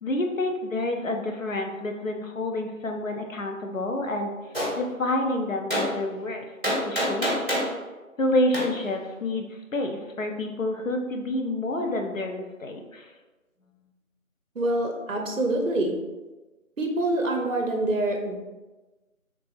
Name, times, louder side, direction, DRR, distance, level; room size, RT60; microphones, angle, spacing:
voice 1, 0.0-4.3 4.7-7.3 8.2-13.1, left 1 dB, 65° left, 3 dB, 0.6 m, -28 dB
Gunshot gunfire, 4.5-4.7 5.7-5.9 6.6-7.7 8.5-8.7, equal, 40° right, 0.9 m, -25 dB
voice 2, 14.6-16.0 16.8-18.4, right 1 dB, 65° right, 3 dB, 0.6 m, -26 dB
3.4 x 3.2 x 2.5 m, 1.2 s
figure-of-eight pair, 175°, 42 cm